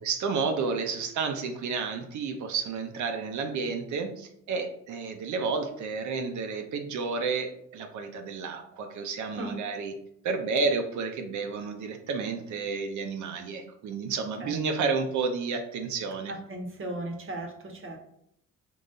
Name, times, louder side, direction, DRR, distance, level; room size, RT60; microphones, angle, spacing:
voice 1, 0.0-9.9 10.2-16.3, right 4 dB, 75° right, 4 dB, 0.7 m, -31 dB
voice 2, 16.3-18.0, right 1 dB, 45° right, 3 dB, 1.0 m, -36 dB
3.8 x 3.1 x 3.9 m, 0.71 s
cardioid pair, 90°, 30 cm